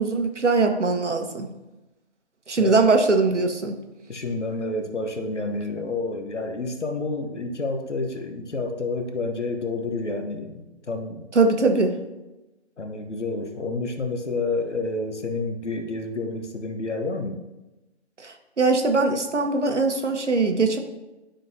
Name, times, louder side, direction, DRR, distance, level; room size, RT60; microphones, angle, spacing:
voice 1, 0.0-1.5 2.5-3.7 11.3-12.0 18.2-20.8, right 3 dB, 90° right, 5 dB, 1.1 m, -21 dB
voice 2, 2.6-2.9 4.1-11.3 12.8-17.4, left 3 dB, 90° left, 6 dB, 1.1 m, -29 dB
11.5 x 3.9 x 2.7 m, 1.0 s
figure-of-eight pair, 155°, 34 cm